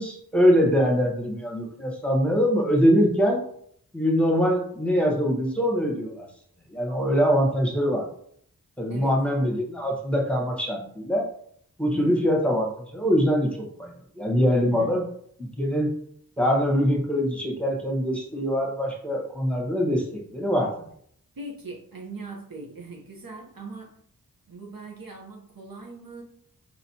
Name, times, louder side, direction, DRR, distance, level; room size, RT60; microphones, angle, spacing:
voice 1, 0.0-3.4 3.9-6.3 6.7-8.0 8.8-11.3 11.8-15.0 15.4-15.9 16.4-20.9, equal, 5° left, 0 dB, 1.2 m, -23 dB
voice 2, 11.9-12.3 14.6-14.9 21.3-23.9 24.5-26.2, right 3 dB, 70° right, 0 dB, 1.0 m, -40 dB
4.1 x 3.7 x 2.9 m, 0.64 s
cardioid pair, 40°, 36 cm